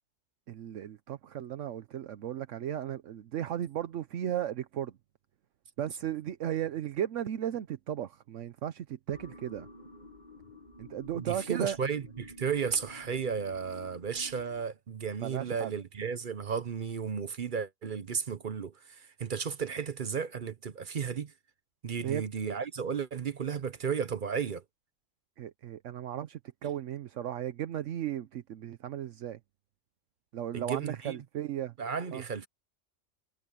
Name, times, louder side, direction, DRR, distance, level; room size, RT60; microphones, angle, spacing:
voice 1, 0.5-4.9 5.8-9.7 10.8-11.8 15.2-15.7 22.0-22.2 25.4-29.4 30.3-31.7 32.1-32.2, right 10 dB, 75° right, 1.0 m, -35 dB
sound 1, 9.1-14.6, left 1 dB, 35° left, 1.9 m, -51 dB
voice 2, 11.1-21.3 21.8-24.6 30.5-31.2 31.8-32.5, right 6 dB, 45° right, 0.9 m, -34 dB
omnidirectional pair, 1.3 m